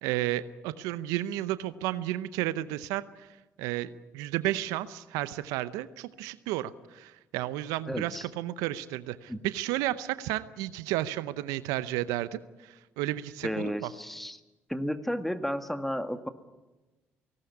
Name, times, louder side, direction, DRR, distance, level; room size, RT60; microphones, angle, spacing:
voice 1, 0.0-3.3 3.6-13.9, right 15 dB, 80° right, 15 dB, 0.7 m, -32 dB
voice 2, 7.9-8.2 9.3-9.4 13.4-14.4 14.7-16.3, equal, 5° left, 8 dB, 1.9 m, -32 dB
18.0 x 18.0 x 9.6 m, 1.1 s
hypercardioid pair, 55°, 6 cm